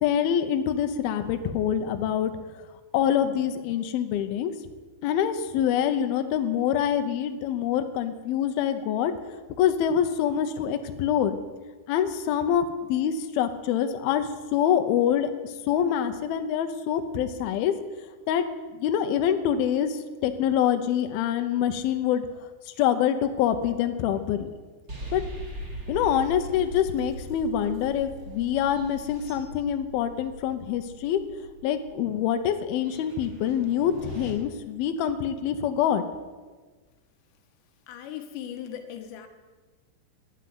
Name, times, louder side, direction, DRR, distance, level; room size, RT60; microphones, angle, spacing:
voice 1, 0.0-2.7 2.9-4.5 5.0-9.1 9.6-11.4 11.9-17.7 18.3-22.3 22.7-24.5 25.1-25.2 25.9-31.2 31.6-36.0, left 9 dB, 75° left, 8 dB, 2.6 m, -25 dB
sound 1, 24.9-34.3, right 2 dB, 25° right, 2.6 m, -41 dB
voice 2, 37.9-39.3, left 10 dB, 90° left, 5 dB, 3.4 m, -38 dB
12.5 x 9.4 x 9.5 m, 1.4 s
omnidirectional pair, 4.9 m